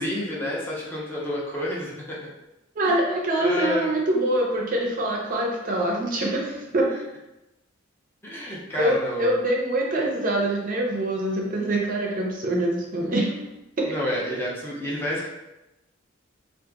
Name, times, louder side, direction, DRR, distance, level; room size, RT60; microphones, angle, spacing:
voice 1, 0.0-2.2 3.4-3.9 8.2-9.4 13.9-15.3, equal, 10° left, -5 dB, 0.5 m, -29 dB
voice 2, 2.8-6.9 8.8-13.3 13.8-13.9, right 1 dB, 45° right, -1 dB, 0.5 m, -24 dB
2.7 x 2.4 x 2.3 m, 0.96 s
head